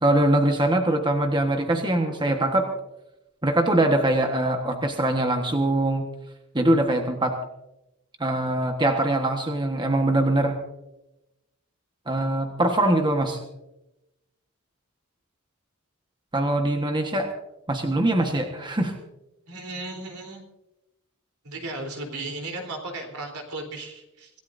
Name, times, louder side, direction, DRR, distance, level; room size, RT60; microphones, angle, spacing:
voice 1, 0.0-2.7 3.4-6.1 6.5-7.4 8.2-10.6 12.1-13.4 16.3-17.3 17.7-18.9, right 1 dB, 20° right, 3 dB, 1.4 m, -22 dB
voice 2, 19.5-20.4 21.4-24.3, right 2 dB, 75° right, 4 dB, 3.8 m, -35 dB
26.0 x 16.5 x 2.7 m, 0.94 s
head